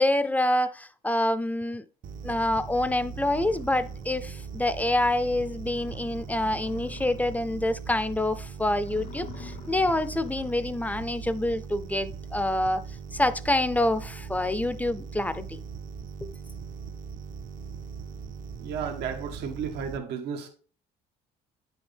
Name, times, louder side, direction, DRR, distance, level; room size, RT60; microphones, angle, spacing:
voice 1, 0.0-1.8 2.2-12.8 13.1-15.6 16.2-16.3, left 1 dB, 10° left, 0.5 m, -27 dB
sound 1, 2.0-20.0, right 6 dB, 55° right, 0.7 m, -40 dB
sound 2, 2.6-2.7 3.1-4.5 4.9-5.0 5.4-5.5 5.7-7.6 7.9-8.3 8.7-10.8, left 7 dB, 60° left, 0.9 m, -48 dB
voice 2, 18.6-20.5, right 7 dB, 85° right, 1.3 m, -33 dB
9.5 x 6.3 x 3.4 m
cardioid pair, 110°, 17 cm